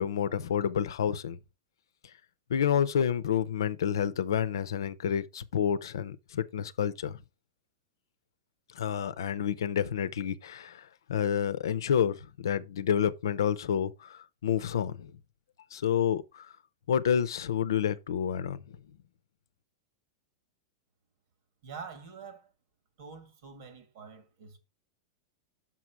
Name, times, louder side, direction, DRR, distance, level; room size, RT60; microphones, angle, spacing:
voice 1, 0.0-1.4 2.5-7.2 8.7-15.1 15.7-16.5 16.9-18.6, left 8 dB, 85° left, 0.6 m, -29 dB
voice 2, 21.6-22.5 23.0-24.6, right 5 dB, 70° right, 2.0 m, -46 dB
6.1 x 5.9 x 4.6 m
hypercardioid pair, 120°, 2 cm